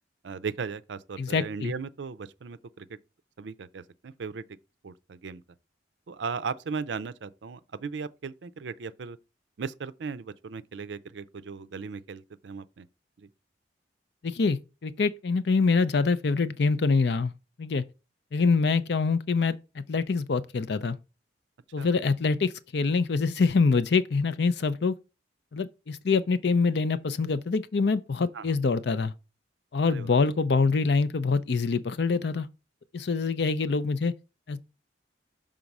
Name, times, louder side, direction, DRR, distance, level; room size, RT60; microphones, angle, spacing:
voice 1, 0.2-3.0 3.4-4.4 4.8-5.4 6.1-9.2 9.6-12.9 13.2-13.3 21.8-21.9 28.3-28.5 29.9-30.1, right 5 dB, 70° right, 0.4 m, -37 dB
voice 2, 1.2-1.7 14.2-17.3 17.6-17.8 18.3-19.6 19.9-21.0 21.7-25.0 25.5-29.1 29.7-32.5 32.9-34.1 34.5-34.6, left 4 dB, 60° left, 0.5 m, -25 dB
6.0 x 3.7 x 5.2 m
head